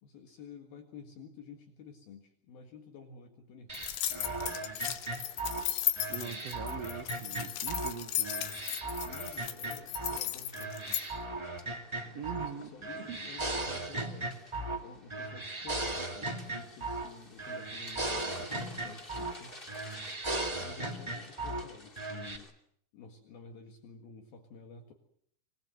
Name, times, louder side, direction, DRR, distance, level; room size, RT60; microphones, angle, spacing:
voice 1, 0.0-3.9 6.2-6.5 8.9-11.3 12.0-19.9 20.6-22.5 22.9-24.9, left 5 dB, 65° left, 5 dB, 3.5 m, -51 dB
sound 1, 3.7-11.1, left 13 dB, 85° left, 3.6 m, -35 dB
sound 2, 3.7-8.0 8.2-10.2 10.5-12.5 12.8-14.8 15.1-17.1 17.4-19.4 19.7-21.6 21.9-22.4, right 2 dB, 20° right, 0.6 m, -37 dB
sound 3, 4.4-22.5, left 1 dB, 20° left, 1.8 m, -55 dB
voice 2, 6.1-8.4 12.1-12.7 12.9-13.2, right 9 dB, 75° right, 7 dB, 1.5 m, -42 dB
26.5 x 21.0 x 7.8 m, 0.68 s
omnidirectional pair, 4.9 m